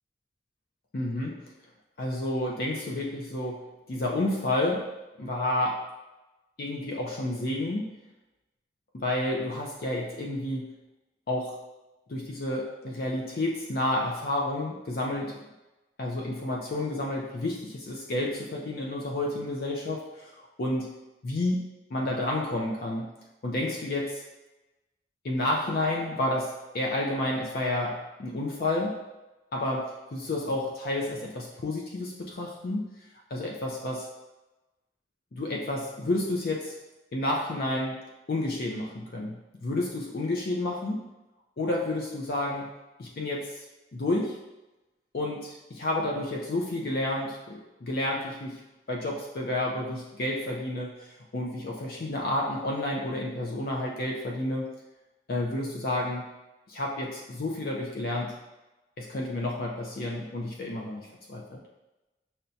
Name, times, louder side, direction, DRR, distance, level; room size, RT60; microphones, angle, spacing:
voice 1, 0.9-1.4 2.0-5.9 6.6-8.0 8.9-10.7 11.3-11.6 12.1-15.4 16.0-20.9 21.2-21.6 21.9-23.1 23.4-24.2 25.2-29.1 29.5-33.0 33.3-34.1 35.3-36.8 37.1-38.0 38.3-41.1 41.6-42.7 43.0-43.6 43.9-44.4 45.1-48.6 48.9-54.7 55.3-56.3 56.7-58.4 59.0-61.0 61.3-61.6, left 1 dB, 55° left, -2 dB, 0.5 m, -30 dB
5.6 x 2.2 x 2.6 m, 1.0 s
head